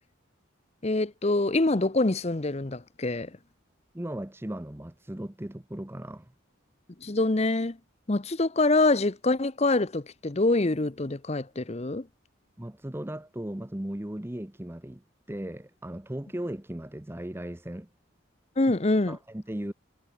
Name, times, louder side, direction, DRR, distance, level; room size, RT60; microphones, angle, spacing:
voice 1, 0.8-3.3 7.0-7.8 8.1-12.1 18.6-19.2, left 2 dB, 30° left, 0.8 m, -25 dB
voice 2, 3.9-6.3 12.6-17.9 19.1-19.7, right 1 dB, 10° right, 0.8 m, -37 dB
head